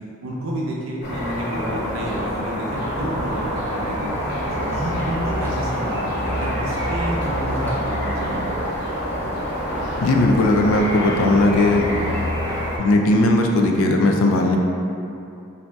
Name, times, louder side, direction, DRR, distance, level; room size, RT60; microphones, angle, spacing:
voice 1, 0.2-4.1 4.5-8.4, equal, 75° right, -4 dB, 0.5 m, -29 dB
sound 1, 1.0-12.8, equal, 60° left, 0.7 m, -26 dB
Microwave oven, 4.0-12.3, right 1 dB, 10° left, 0.4 m, -39 dB
voice 2, 10.0-11.9 12.8-14.6, left 2 dB, 85° left, 2 dB, 0.3 m, -17 dB
2.7 x 2.0 x 3.2 m, 2.6 s
head